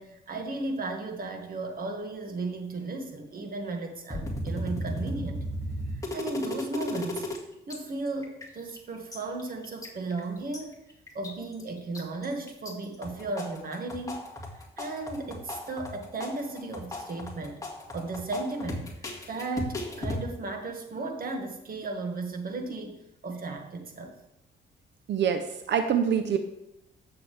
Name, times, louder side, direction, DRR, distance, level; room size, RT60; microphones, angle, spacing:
voice 1, 0.0-5.4 5.9-7.2 7.7-10.7 11.1-14.3 14.5-17.6 17.9-23.0 23.2-24.1, right 3 dB, 45° right, 3 dB, 2.0 m, -35 dB
sound 1, 4.1-7.4 7.7-7.8 8.1-8.8 9.1-10.6 11.1-11.6 11.9-12.7 13.0-20.2, left 1 dB, 15° left, 2.0 m, -35 dB
voice 2, 25.1-26.4, right 8 dB, 65° right, 8 dB, 0.8 m, -25 dB
14.5 x 6.9 x 3.4 m, 0.85 s
cardioid pair, 90°, 20 cm